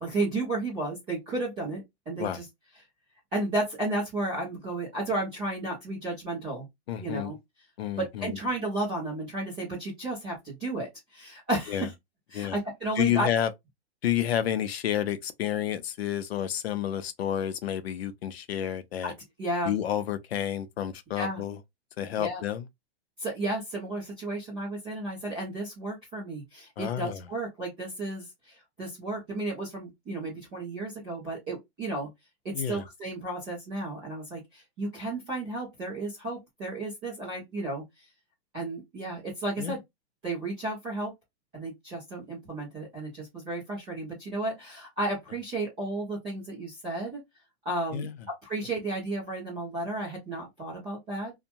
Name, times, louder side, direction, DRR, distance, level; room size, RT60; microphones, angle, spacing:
voice 1, 0.0-2.4 3.3-6.7 7.0-7.3 8.0-11.9 12.3-13.3 19.0-19.1 19.4-19.7 21.1-21.4 22.2-22.4 23.2-32.1 32.4-37.8 38.5-39.8 40.2-41.1 41.5-47.2 47.6-48.1 48.4-51.3, right 2 dB, 5° right, 0.4 m, -33 dB
voice 2, 6.9-7.3 7.8-8.4 11.7-11.9 12.3-12.6 13.0-13.5 14.0-19.1 19.6-21.6 22.0-22.7 26.8-27.3 32.5-32.8 39.6-39.8 47.9-48.1, left 10 dB, 65° left, 0.6 m, -30 dB
2.8 x 2.1 x 2.5 m
hypercardioid pair, 165°, 33 cm